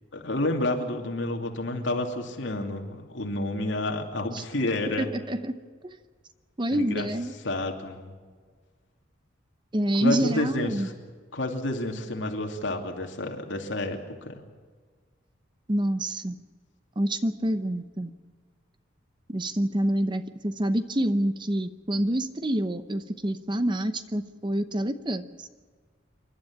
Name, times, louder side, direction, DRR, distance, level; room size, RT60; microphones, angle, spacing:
voice 1, 0.1-5.1 6.7-7.1 7.4-8.2 9.9-10.9 11.3-14.4, left 1 dB, 75° left, 3 dB, 2.7 m, -30 dB
voice 2, 5.0-5.6 5.8-6.0 6.6-7.3 9.7-10.9 15.7-16.4 17.0-18.1 19.3-25.5, right 1 dB, 25° right, 11 dB, 0.8 m, -27 dB
28.0 x 12.0 x 8.7 m, 1.5 s
head